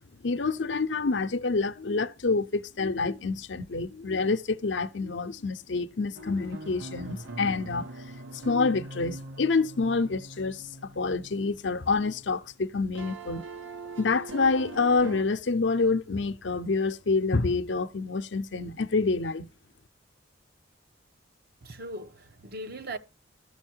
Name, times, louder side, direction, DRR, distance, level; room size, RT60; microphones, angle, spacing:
voice 1, 0.2-7.9 8.3-13.5 14.0-19.5, left 4 dB, 65° left, 0.7 m, -27 dB
sound 1, 6.1-12.7 12.9-15.2, right 2 dB, 85° right, 1.4 m, -42 dB
voice 2, 21.6-23.0, right 1 dB, 55° right, 1.0 m, -39 dB
12.5 x 7.2 x 4.5 m
head